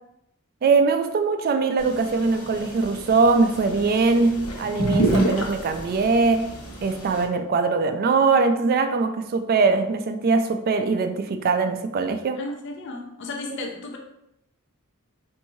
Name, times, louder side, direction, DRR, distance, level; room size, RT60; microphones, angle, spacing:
voice 1, 0.6-6.5 6.8-12.4, right 4 dB, 45° right, 0.3 m, -21 dB
sound 1, 1.8-7.2, right 1 dB, 80° left, 0.9 m, -29 dB
voice 2, 12.4-14.0, left 2 dB, 55° left, 0.5 m, -34 dB
4.4 x 2.6 x 3.0 m
head